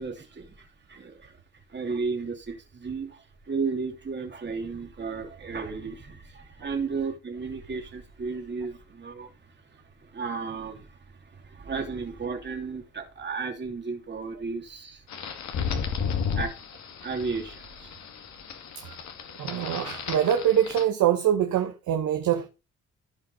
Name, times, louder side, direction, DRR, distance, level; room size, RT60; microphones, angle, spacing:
voice 1, 0.0-1.4 1.7-9.3 9.6-15.0 16.4-16.5 17.0-18.0, right 4 dB, 35° right, 2.8 m, -34 dB
sound 1, 15.1-20.8, left 6 dB, 65° left, 2.0 m, -34 dB
voice 2, 19.4-22.5, right 10 dB, 75° right, 1.1 m, -24 dB
15.0 x 5.2 x 4.0 m
cardioid pair, 90°, 30 cm